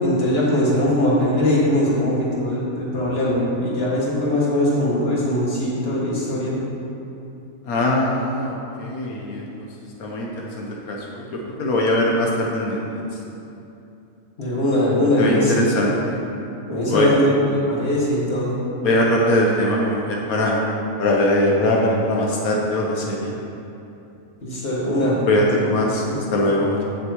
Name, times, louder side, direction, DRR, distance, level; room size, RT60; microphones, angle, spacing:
voice 1, 0.0-6.6 14.4-15.7 16.7-18.6 24.4-25.2 25.5-25.6 26.0-26.2, left 1 dB, 45° left, -6 dB, 2.2 m, -21 dB
voice 2, 7.7-9.7 10.0-10.3 10.6-12.8 15.2-16.2 16.9-17.1 18.8-20.6 21.0-23.4 25.3-26.0 26.3-26.8, left 1 dB, 90° left, -2 dB, 1.4 m, -21 dB
15.5 x 6.5 x 3.0 m, 2.8 s
omnidirectional pair, 1.5 m